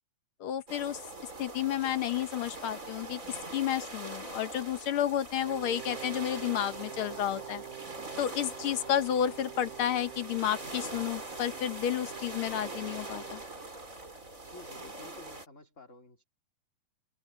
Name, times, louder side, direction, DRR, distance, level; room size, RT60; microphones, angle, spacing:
voice 1, 0.4-1.0 1.4-7.6 8.2-13.4, left 10 dB, 65° left, 1.4 m, -31 dB
sound 1, 0.7-15.5, right 2 dB, 25° right, 5.5 m, -43 dB
Wind instrument woodwind instrument, 5.4-13.5, right 12 dB, 85° right, 2.5 m, -47 dB
voice 2, 14.5-16.2, left 3 dB, 25° left, 3.2 m, -51 dB
omnidirectional pair, 3.4 m